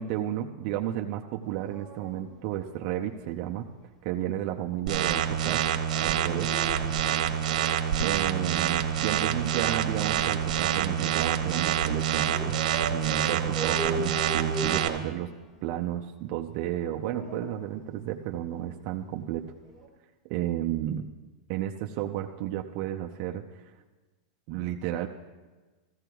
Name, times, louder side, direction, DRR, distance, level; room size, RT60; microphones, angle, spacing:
voice 1, 0.0-3.7 4.0-5.6 6.0-6.5 8.0-12.6 12.9-15.3 15.6-19.5 20.3-21.1 21.5-23.7 24.5-25.1, right 12 dB, 45° right, 2 dB, 0.6 m, -32 dB
Dog, 1.4-3.3 5.7-8.1 9.4-11.1 12.2-15.8 16.7-18.4 19.7-19.9, right 1 dB, 20° left, 2.0 m, -40 dB
sound 1, 4.9-14.9, right 9 dB, 75° right, 1.0 m, -27 dB
15.5 x 15.0 x 2.3 m, 1.3 s
supercardioid pair, 140°, 4 cm